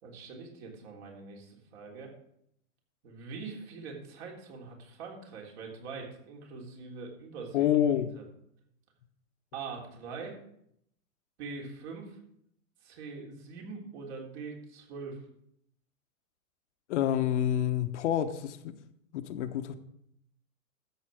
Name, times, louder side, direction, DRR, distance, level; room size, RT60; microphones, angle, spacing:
voice 1, 0.0-2.1 3.0-7.7 8.2-8.3 9.5-10.4 11.4-12.2 12.8-15.2, right 4 dB, 50° right, 0 dB, 3.7 m, -43 dB
voice 2, 7.5-8.1 16.9-18.7 19.1-19.7, left 10 dB, 55° left, 8 dB, 1.1 m, -28 dB
12.5 x 7.9 x 4.9 m, 0.73 s
hypercardioid pair, 135°, 42 cm